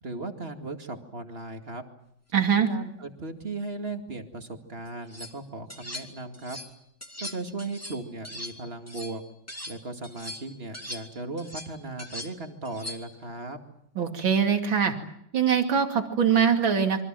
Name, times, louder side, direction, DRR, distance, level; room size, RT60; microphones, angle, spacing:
voice 1, 0.0-1.8 2.5-6.6 7.2-9.2 9.7-13.6, right 3 dB, 30° right, 5 dB, 2.5 m, -37 dB
voice 2, 2.3-2.7 14.0-14.9 15.3-17.0, right 7 dB, 80° right, 5 dB, 3.3 m, -23 dB
sound 1, 4.9-5.3 5.7-6.7 7.0-9.8 10.0-13.2, left 1 dB, 5° left, 2.7 m, -41 dB
27.0 x 24.5 x 7.6 m, 0.73 s
omnidirectional pair, 2.1 m